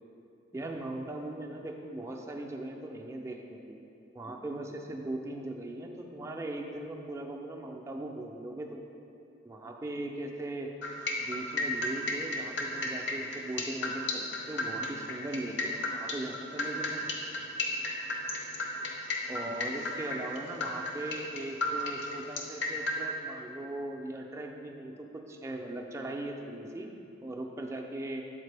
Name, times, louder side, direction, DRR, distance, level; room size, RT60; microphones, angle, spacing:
voice 1, 0.5-3.8 4.1-8.8 9.4-10.7 11.2-17.0 19.3-26.9 27.2-28.2, right 1 dB, 15° right, 1 dB, 0.3 m, -39 dB
sound 1, 10.8-23.0, left 2 dB, 70° left, 0.7 m, -33 dB
7.3 x 4.2 x 3.3 m, 2.7 s
head